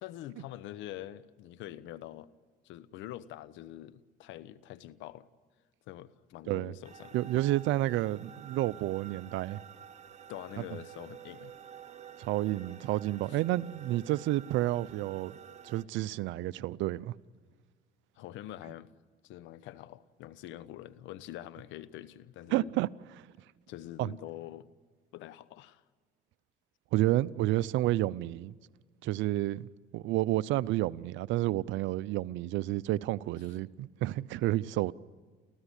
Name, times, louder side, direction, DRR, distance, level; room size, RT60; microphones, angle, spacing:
voice 1, 0.0-2.3 2.6-5.3 5.9-7.3 10.3-11.5 13.3-13.4 18.2-18.9 19.2-22.7 23.7-24.7 25.1-25.8, left 13 dB, 75° left, 1.0 m, -45 dB
sound 1, 6.8-15.8, right 8 dB, 35° right, 1.6 m, -50 dB
voice 2, 7.1-9.6 12.2-15.4 15.6-17.1 22.5-22.9 24.0-24.1 26.9-28.6 29.0-34.9, right 16 dB, 75° right, 0.7 m, -30 dB
30.0 x 14.5 x 10.0 m
supercardioid pair, 85°, 20 cm